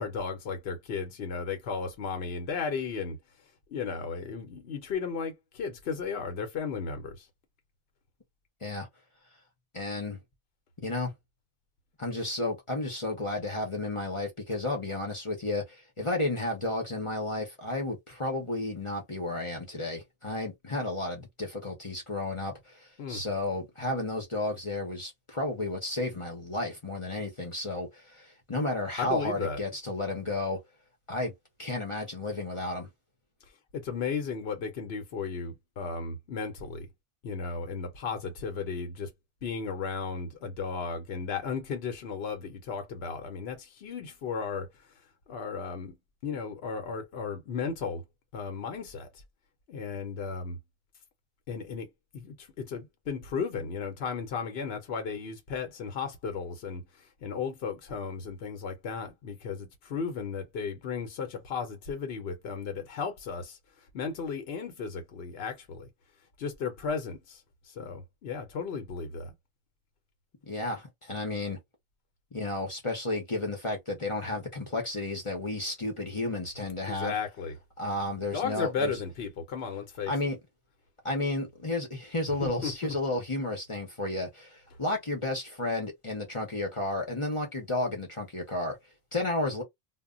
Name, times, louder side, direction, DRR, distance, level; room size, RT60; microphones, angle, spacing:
voice 1, 0.0-3.2 3.7-7.3 23.0-23.2 29.0-29.6 33.7-36.9 37.2-39.1 39.4-44.9 45.3-46.0 46.2-48.0 48.3-49.1 49.7-50.6 51.5-63.6 63.9-65.9 66.4-69.3 76.9-77.5 78.3-80.1 82.2-82.9, left 5 dB, 80° left, 0.9 m, -35 dB
voice 2, 9.7-10.2 10.8-11.1 12.0-30.6 31.1-31.3 31.6-32.9 70.4-71.6 72.3-77.1 77.8-78.9 80.1-80.4 81.0-88.8 89.1-89.6, left 2 dB, 35° left, 0.7 m, -32 dB
2.1 x 2.1 x 3.6 m
omnidirectional pair, 1.0 m